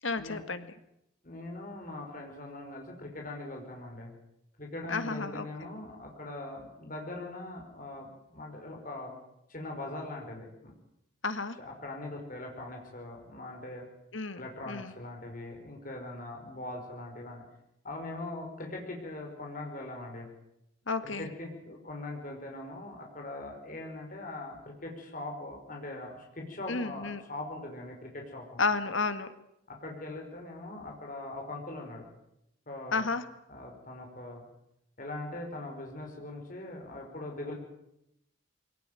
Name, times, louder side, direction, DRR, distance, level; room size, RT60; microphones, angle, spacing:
voice 1, 0.0-0.7 4.9-5.5 11.2-11.6 14.1-14.9 20.9-21.3 26.7-27.2 28.6-29.3 32.9-33.2, left 4 dB, 75° left, 10 dB, 1.9 m, -32 dB
voice 2, 1.2-4.1 4.6-9.2 9.5-10.7 11.6-13.9 14.4-17.4 17.8-20.3 21.0-28.6 29.7-32.1 32.7-33.0 33.5-34.5 35.0-37.5, left 2 dB, 40° left, 1 dB, 5.1 m, -41 dB
23.0 x 18.5 x 9.2 m, 0.81 s
head